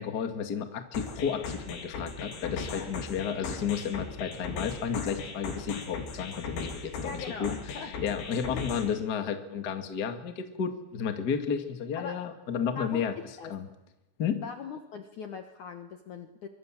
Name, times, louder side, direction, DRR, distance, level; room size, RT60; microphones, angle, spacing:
voice 1, 0.0-7.5 7.8-13.1 13.5-13.7 14.2-14.4, left 7 dB, 35° left, 7 dB, 1.7 m, -32 dB
sound 1, 0.9-8.9, left 4 dB, 85° left, 5.5 m, -38 dB
voice 2, 7.0-8.0 8.3-8.8 12.0-12.2 12.7-13.1 13.4-13.5 14.4-16.5, left 5 dB, 60° left, 6 dB, 2.2 m, -41 dB
24.5 x 23.5 x 7.6 m, 0.97 s
omnidirectional pair, 5.0 m